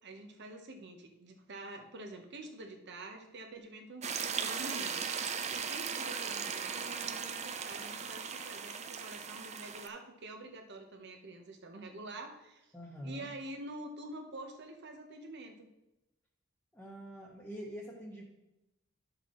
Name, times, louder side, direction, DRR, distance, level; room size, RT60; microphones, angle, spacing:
voice 1, 0.0-12.7 13.0-15.7, right 2 dB, 55° right, 4 dB, 1.0 m, -47 dB
sound 1, 4.0-9.9, right 6 dB, 35° right, 0.5 m, -38 dB
voice 2, 12.7-13.3 16.7-18.2, equal, 5° left, -6 dB, 1.1 m, -45 dB
11.0 x 6.6 x 3.1 m, 0.95 s
head